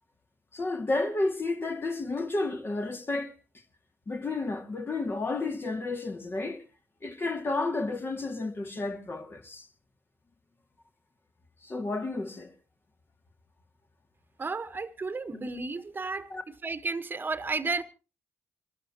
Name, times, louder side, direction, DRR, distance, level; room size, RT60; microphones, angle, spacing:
voice 1, 0.5-3.3 4.1-6.6 7.0-9.7 11.6-12.5 16.3-16.4, left 2 dB, 35° left, 2.4 m, -31 dB
voice 2, 14.4-16.3 16.6-17.8, right 3 dB, 30° right, 1.3 m, -32 dB
25.5 x 13.0 x 3.0 m
hypercardioid pair, 40°, 6 cm